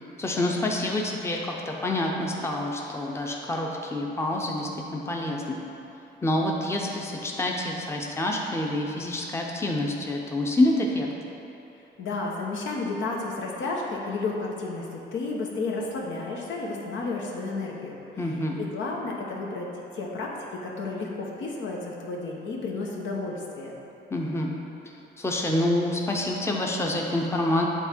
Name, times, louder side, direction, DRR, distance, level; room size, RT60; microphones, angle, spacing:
voice 1, 0.2-5.6 6.2-11.1 18.2-18.6 24.1-24.5 25.2-27.7, left 1 dB, 15° left, 0 dB, 0.7 m, -27 dB
voice 2, 12.0-23.7, left 3 dB, 75° left, -2 dB, 1.0 m, -32 dB
8.1 x 3.5 x 4.4 m, 2.9 s
cardioid pair, 90°, 20 cm